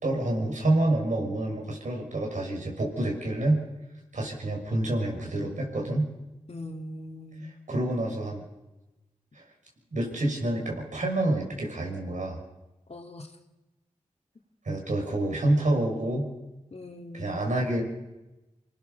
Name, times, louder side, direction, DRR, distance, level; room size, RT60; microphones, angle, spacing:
voice 1, 0.0-3.6 4.1-6.1 7.7-8.4 9.3-9.4 9.9-12.4 14.6-16.3 17.1-17.8, right 1 dB, 70° right, 0 dB, 6.0 m, -27 dB
voice 2, 6.5-7.5 12.9-13.3 16.7-17.4, left 1 dB, 50° left, 3 dB, 2.4 m, -41 dB
26.5 x 19.0 x 6.8 m, 1.1 s
cardioid pair, 50°, 13 cm